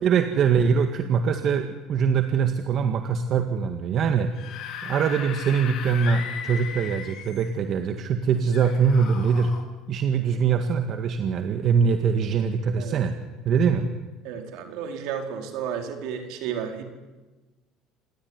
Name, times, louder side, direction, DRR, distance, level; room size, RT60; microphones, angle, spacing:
voice 1, 0.0-4.3 4.8-9.5 9.9-13.1 13.5-13.8, right 6 dB, 50° right, 6 dB, 1.9 m, -23 dB
Screaming / Screech, 4.2-7.6 8.5-9.6, left 8 dB, 60° left, 4.4 m, -37 dB
voice 2, 14.2-16.8, right 8 dB, 75° right, 4 dB, 4.6 m, -32 dB
27.5 x 18.5 x 9.8 m, 1.2 s
supercardioid pair, 105°, 0 cm